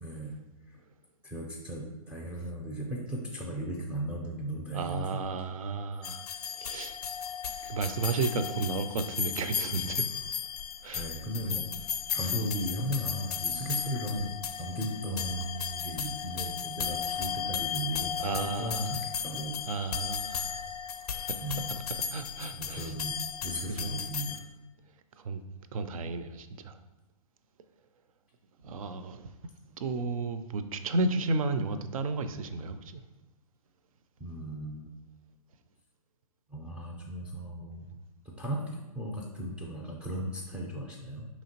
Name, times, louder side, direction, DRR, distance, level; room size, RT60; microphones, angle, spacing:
voice 1, 0.0-0.4 0.7-0.8 1.2-5.2 10.9-11.7 12.1-14.3 14.6-19.6 21.4-21.7 22.5-24.4 34.2-35.0 36.5-37.9 38.2-41.3, equal, 5° right, -2 dB, 0.4 m, -36 dB
voice 2, 4.7-6.3 6.6-7.0 7.6-10.1 10.8-11.1 18.2-19.0 19.7-20.6 21.1-21.4 22.1-22.9 23.7-24.0 25.2-25.4 25.7-26.8 28.6-29.3 29.8-33.0, right 3 dB, 65° right, 10 dB, 0.4 m, -33 dB
sound 1, 6.0-24.4, left 8 dB, 85° left, 0.4 m, -35 dB
4.9 x 2.9 x 2.8 m, 1.1 s
hypercardioid pair, 130°, 19 cm